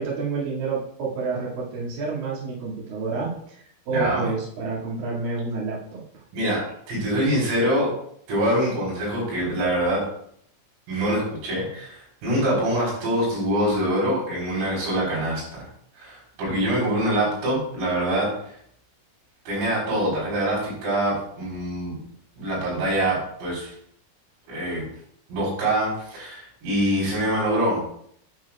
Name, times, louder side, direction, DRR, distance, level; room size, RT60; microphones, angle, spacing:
voice 1, 0.0-6.0 16.5-17.1, right 4 dB, 55° right, -7 dB, 3.5 m, -29 dB
voice 2, 3.9-4.3 6.3-6.6 6.9-7.9 8.3-10.0 10.9-15.7 16.0-18.3 19.5-22.0 22.4-23.7 24.5-24.8 25.3-27.8, right 1 dB, 90° right, -5 dB, 6.9 m, -24 dB
10.0 x 9.5 x 2.4 m, 0.66 s
omnidirectional pair, 5.8 m